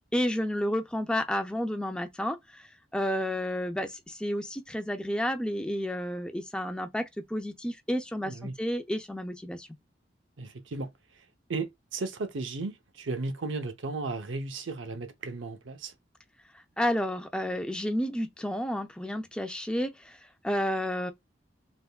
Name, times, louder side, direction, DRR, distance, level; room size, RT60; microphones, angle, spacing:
voice 1, 0.1-9.7 16.5-21.1, equal, 5° left, 0.4 m, -31 dB
voice 2, 10.4-10.9 11.2-11.3 11.5-15.9, right 3 dB, 85° right, 0.7 m, -35 dB
3.6 x 3.3 x 2.2 m
head